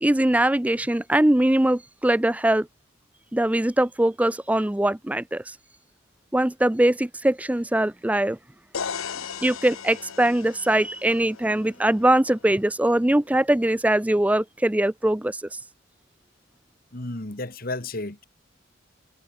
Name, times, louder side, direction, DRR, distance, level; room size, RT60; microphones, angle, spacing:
voice 1, 0.0-2.7 3.3-5.5 6.3-8.4 9.4-15.6, right 1 dB, 5° right, 0.4 m, -22 dB
sound 1, 8.7-12.6, left 6 dB, 85° left, 1.0 m, -37 dB
voice 2, 16.9-18.2, left 2 dB, 45° left, 1.8 m, -32 dB
head